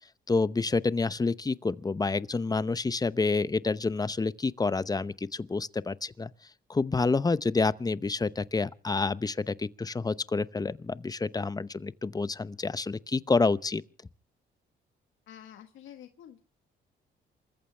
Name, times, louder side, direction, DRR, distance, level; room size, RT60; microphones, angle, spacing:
voice 1, 0.3-6.3 6.7-13.8, left 3 dB, 20° left, 0.8 m, -28 dB
voice 2, 15.3-16.4, left 10 dB, 80° left, 1.5 m, -48 dB
28.0 x 14.5 x 3.4 m
cardioid pair, 90°, 20 cm